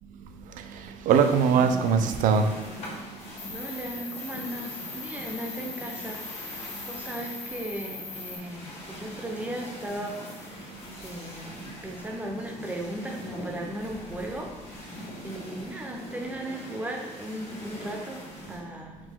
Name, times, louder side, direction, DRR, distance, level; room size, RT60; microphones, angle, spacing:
voice 1, 0.3-3.5 6.7-6.9 10.7-10.8, right 6 dB, 75° right, 0.4 m, -24 dB
sound 1, 1.1-18.6, left 1 dB, 55° left, 1.2 m, -42 dB
Cricket, 3.4-8.4, left 4 dB, 85° left, 1.4 m, -40 dB
voice 2, 3.5-19.0, right 1 dB, 10° right, 0.5 m, -37 dB
4.9 x 2.2 x 3.7 m
cardioid pair, 155°, 14 cm